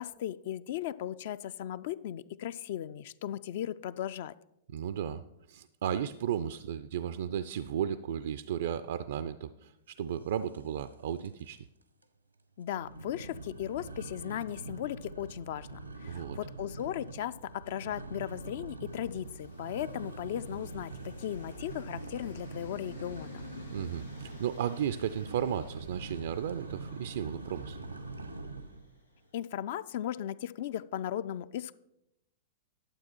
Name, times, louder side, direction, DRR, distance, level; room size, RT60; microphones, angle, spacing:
voice 1, 0.0-4.4 12.6-23.4 29.3-31.7, left 11 dB, 55° left, 16 dB, 0.3 m, -37 dB
voice 2, 4.7-5.2 5.5-11.6 16.1-16.4 23.7-27.8, right 9 dB, 60° right, 13 dB, 0.3 m, -34 dB
sound 1, 10.5-10.9 11.2-11.6 12.0-12.1 12.7-28.9, right 3 dB, 90° right, 0.9 m, -44 dB
sound 2, 18.9-29.2, left 3 dB, 90° left, 1.3 m, -54 dB
12.0 x 7.6 x 4.4 m, 0.86 s
figure-of-eight pair, 100°, 0 cm